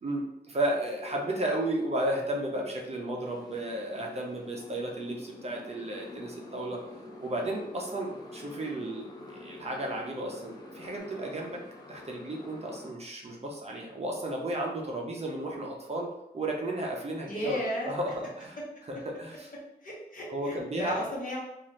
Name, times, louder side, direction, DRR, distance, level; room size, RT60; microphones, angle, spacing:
voice 1, 0.0-6.8 7.2-11.6 11.9-16.1 16.3-18.5 18.9-19.5 20.3-21.0, right 1 dB, 40° right, -1 dB, 0.5 m, -33 dB
sound 1, 0.8-11.0, left 2 dB, 5° right, 0.9 m, -50 dB
Motorcycle, 3.2-12.9, left 2 dB, 25° left, 0.4 m, -48 dB
voice 2, 17.3-17.9 19.8-21.4, equal, 50° left, -5 dB, 0.9 m, -34 dB
2.6 x 2.4 x 3.1 m, 0.84 s
wide cardioid pair, 145°, 17 cm